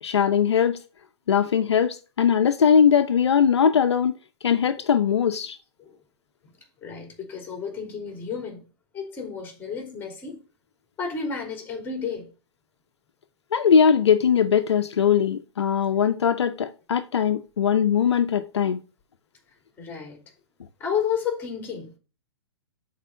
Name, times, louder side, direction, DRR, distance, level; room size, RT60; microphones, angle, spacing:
voice 1, 0.0-0.8 1.3-4.1 4.4-5.6 13.5-18.8, left 7 dB, 75° left, 0.7 m, -20 dB
voice 2, 6.8-8.6 8.9-10.4 11.0-12.3 19.8-20.2 20.8-21.9, left 6 dB, 15° left, 3.3 m, -31 dB
7.4 x 4.2 x 6.5 m
hypercardioid pair, 125°, 14 cm